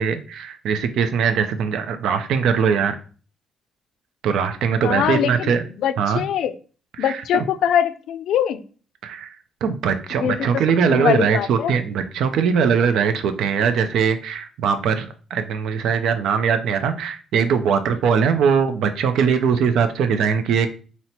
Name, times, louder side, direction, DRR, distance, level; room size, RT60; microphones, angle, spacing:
voice 1, 0.0-3.0 4.2-5.6 6.0-6.2 7.0-7.4 9.0-9.4 9.6-20.7, right 6 dB, 80° right, 8 dB, 0.4 m, -21 dB
voice 2, 4.8-5.5 5.8-6.5 7.0-8.6 10.2-10.5 10.9-11.7, left 9 dB, 80° left, 11 dB, 0.4 m, -22 dB
4.0 x 2.1 x 4.3 m, 0.38 s
cardioid pair, 90°, 0 cm